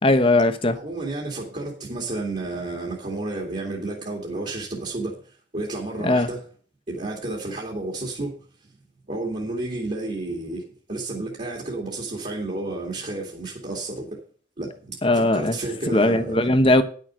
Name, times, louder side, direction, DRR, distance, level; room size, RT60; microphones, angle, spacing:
voice 1, 0.0-0.8 6.0-6.3 15.0-15.6 15.9-16.8, left 2 dB, 30° left, 0.9 m, -19 dB
voice 2, 0.7-5.1 5.5-6.4 6.9-8.4 9.1-14.2 14.6-16.5, right 2 dB, 35° right, 2.3 m, -31 dB
10.5 x 6.6 x 6.2 m
head